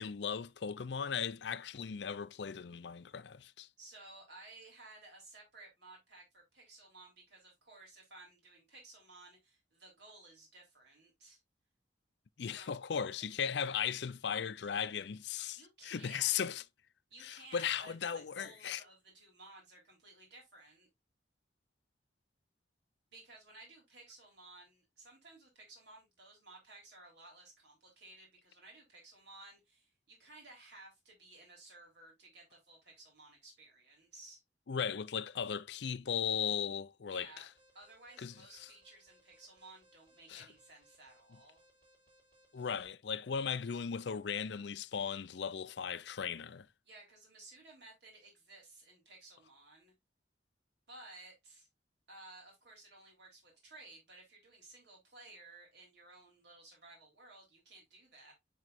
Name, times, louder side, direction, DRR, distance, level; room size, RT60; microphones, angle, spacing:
voice 1, 0.0-3.7 12.4-16.6 17.2-18.8 34.7-37.5 38.2-38.3 40.3-40.5 42.5-46.7, left 7 dB, 65° left, 0.5 m, -37 dB
voice 2, 3.8-11.4 12.5-12.7 15.6-16.6 17.1-20.9 23.1-34.4 37.1-37.5 37.7-41.6 46.8-49.9 50.9-51.7 52.1-58.3, right 2 dB, 65° right, 3.8 m, -56 dB
Alarm, 37.5-42.9, equal, 30° right, 3.4 m, -68 dB
10.5 x 4.6 x 2.5 m
head